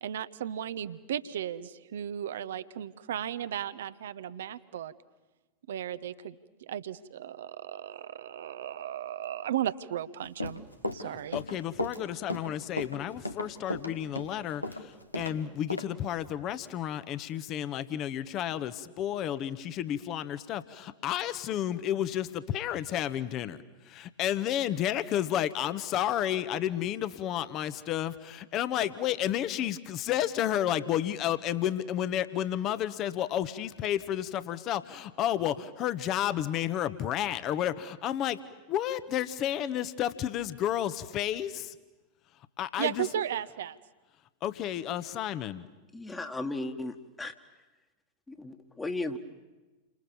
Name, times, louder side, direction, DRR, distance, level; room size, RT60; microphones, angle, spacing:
voice 1, 0.0-4.9 5.7-6.3 6.6-10.6 10.9-11.4 42.8-43.8, right 10 dB, 60° right, 14 dB, 1.0 m, -35 dB
Run, 10.2-15.3 15.7-15.9, left 1 dB, 85° left, 1.5 m, -35 dB
voice 2, 11.3-23.6 23.8-38.4 38.7-41.7 42.6-43.1 44.4-45.7, left 11 dB, 35° left, 13 dB, 1.2 m, -31 dB
voice 3, 45.9-47.3 48.3-49.2, left 2 dB, 10° left, 6 dB, 1.7 m, -35 dB
30.0 x 26.0 x 7.1 m, 1.1 s
figure-of-eight pair, 90°, 0 cm